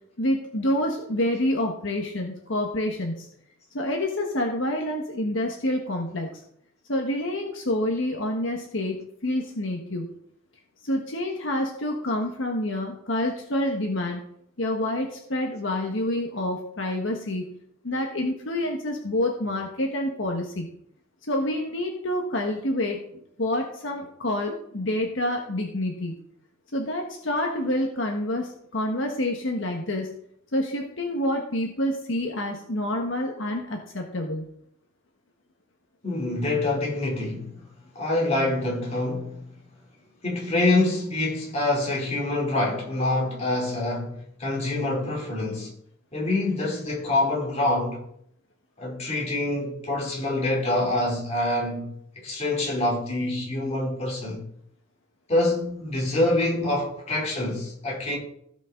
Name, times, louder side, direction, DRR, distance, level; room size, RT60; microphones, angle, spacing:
voice 1, 0.2-3.3 3.7-6.4 6.9-10.1 10.8-14.2 14.6-17.5 17.8-20.7 21.2-26.1 26.7-30.1 30.5-34.5, left 1 dB, 70° left, 1.3 m, -28 dB
voice 2, 36.0-37.6 37.9-39.5 40.2-45.7 46.1-48.0 48.8-54.4 55.3-58.2, left 2 dB, 35° left, 3.1 m, -26 dB
16.5 x 5.6 x 3.8 m
head